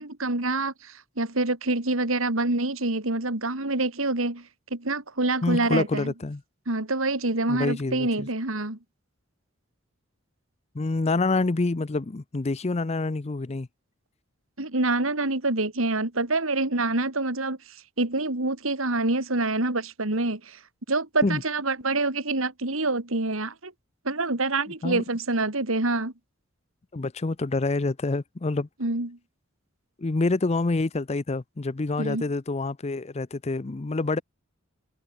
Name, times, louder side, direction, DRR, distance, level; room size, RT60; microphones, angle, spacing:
voice 1, 0.0-6.1 6.7-8.8 14.6-20.6 20.9-23.7 24.0-26.1 28.8-29.2 32.0-32.2, right 2 dB, 75° right, 2.9 m, -26 dB
voice 2, 5.4-6.4 7.5-8.3 10.7-13.7 21.2-21.4 24.8-25.0 26.9-28.7 30.0-34.2, left 3 dB, 30° left, 0.5 m, -27 dB
head